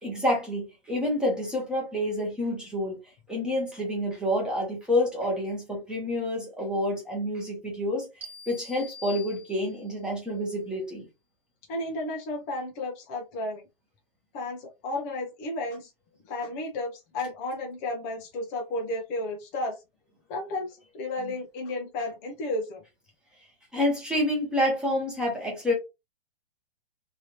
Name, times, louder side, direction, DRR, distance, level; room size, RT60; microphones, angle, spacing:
voice 1, 0.0-3.0 3.3-11.1 21.2-21.3 23.7-25.7, left 1 dB, 5° right, 0.9 m, -28 dB
sound 1, 8.2-10.0, left 2 dB, 85° right, 1.3 m, -45 dB
voice 2, 11.7-13.6 14.3-15.9 16.3-19.8 20.3-22.8, left 2 dB, 15° left, 0.5 m, -33 dB
3.2 x 2.6 x 3.0 m
hypercardioid pair, 155°, 30 cm